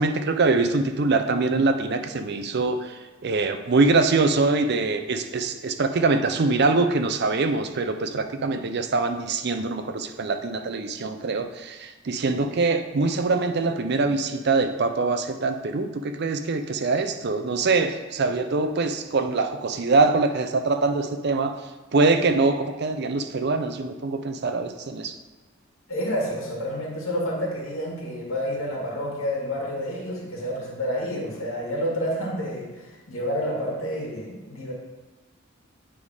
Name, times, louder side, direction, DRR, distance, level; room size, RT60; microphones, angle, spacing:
voice 1, 0.0-21.6 21.9-25.2, right 3 dB, 55° right, 7 dB, 0.5 m, -23 dB
voice 2, 25.9-34.7, equal, 85° left, -2 dB, 1.9 m, -29 dB
8.6 x 3.6 x 4.8 m, 1.3 s
head